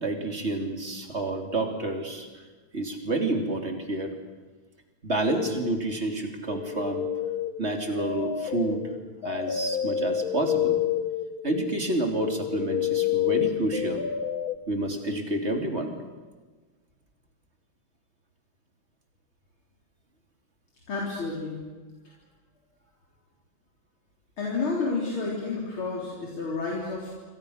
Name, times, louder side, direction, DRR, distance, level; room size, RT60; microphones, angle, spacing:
voice 1, 0.0-2.3 2.7-4.2 5.0-7.1 7.6-8.8 9.2-10.8 11.4-14.0 14.7-15.9, right 2 dB, 30° right, 4 dB, 3.4 m, -29 dB
sound 1, 5.2-6.0 6.5-14.6, left 10 dB, 55° left, 1.2 m, -29 dB
voice 2, 20.9-21.6 24.4-27.1, left 3 dB, 75° left, -3 dB, 4.7 m, -30 dB
28.0 x 24.5 x 6.6 m, 1.3 s
omnidirectional pair, 2.3 m